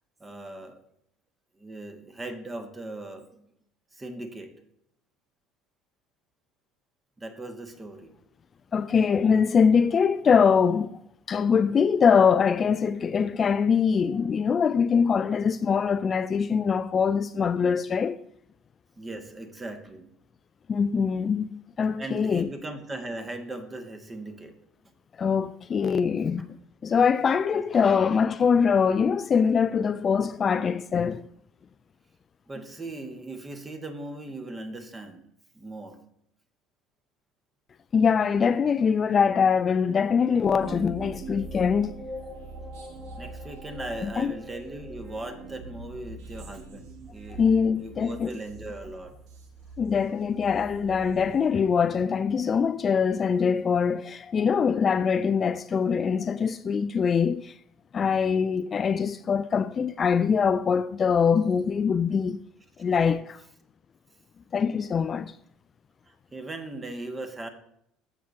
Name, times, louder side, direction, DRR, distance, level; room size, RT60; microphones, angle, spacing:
voice 1, 0.2-0.8 1.5-3.5 3.9-4.5 7.2-8.1 19.0-20.1 22.0-24.6 26.4-26.5 27.5-28.1 32.5-35.2 35.5-36.0 43.2-49.2 66.0-67.5, right 2 dB, 20° right, 1.6 m, -39 dB
voice 2, 8.7-11.0 11.3-18.2 20.7-22.5 25.2-26.4 26.8-31.2 37.9-41.9 44.0-44.3 47.4-48.3 49.8-57.5 57.9-62.4 62.8-63.4 64.5-65.3, left 6 dB, 35° left, 0.3 m, -23 dB
sound 1, 40.4-52.0, right 2 dB, 60° right, 1.5 m, -42 dB
14.5 x 6.0 x 2.8 m
figure-of-eight pair, 65°, 0 cm